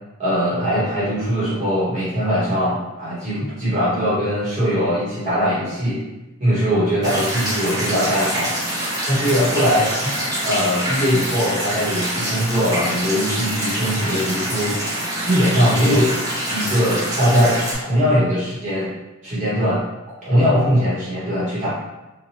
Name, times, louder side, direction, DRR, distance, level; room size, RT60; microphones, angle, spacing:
voice 1, 0.2-6.0 6.4-8.5 9.1-9.9 10.4-14.8 15.2-16.1 16.5-18.9 19.2-19.8 20.2-21.7, equal, 35° right, -10 dB, 1.0 m, -20 dB
sound 1, 7.0-17.8, right 1 dB, 15° right, 0.7 m, -25 dB
2.9 x 2.2 x 2.8 m, 1.0 s
head